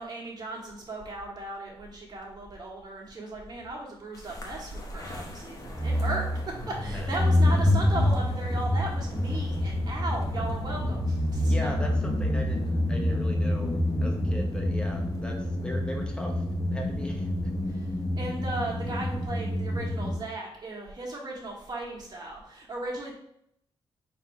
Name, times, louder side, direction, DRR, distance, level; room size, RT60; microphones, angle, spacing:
voice 1, 0.0-11.5 17.7-17.8 18.2-23.1, right 2 dB, 45° right, -2 dB, 1.4 m, -36 dB
sound 1, 4.3-20.2, left 1 dB, 35° left, 1.0 m, -27 dB
voice 2, 11.4-16.4 16.7-17.3, equal, 10° left, 1 dB, 0.9 m, -38 dB
4.1 x 2.7 x 4.5 m, 0.72 s
cardioid pair, 95°, 10 cm